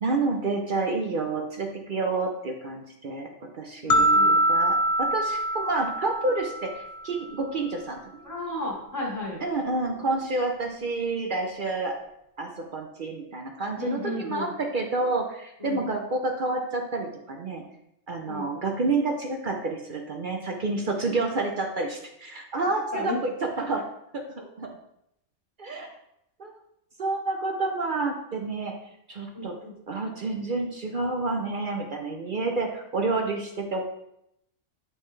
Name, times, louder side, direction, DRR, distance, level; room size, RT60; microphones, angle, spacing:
voice 1, 0.0-8.2 9.4-11.9 12.4-17.6 18.1-23.3 23.6-23.8 24.6-24.7 25.6-25.9 26.4-26.5 27.0-28.7 29.1-29.5 29.9-33.8, right 3 dB, 50° right, 2 dB, 0.7 m, -29 dB
voice 2, 3.8-4.4 8.2-9.4 13.8-14.5 15.6-15.8 18.3-18.5 22.9-23.2 29.3-29.7, left 2 dB, 15° left, -5 dB, 2.0 m, -33 dB
sound 1, 3.9-7.0, right 1 dB, 70° left, 0.3 m, -23 dB
8.8 x 3.3 x 3.7 m, 0.80 s
omnidirectional pair, 1.3 m